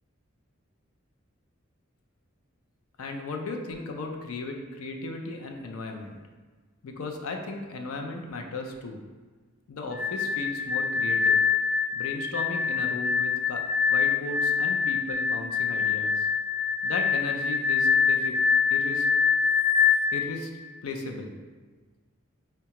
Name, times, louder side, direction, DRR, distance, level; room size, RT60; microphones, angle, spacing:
voice 1, 3.0-6.2 6.8-9.0 9.7-11.4 11.9-13.6 13.9-16.3 16.8-18.4 18.7-19.1 20.1-20.5 20.8-21.3, left 2 dB, 90° left, 3 dB, 0.4 m, -36 dB
sound 1, 9.9-20.1, left 6 dB, 5° right, 0.9 m, -25 dB
4.6 x 2.2 x 2.8 m, 1.4 s
head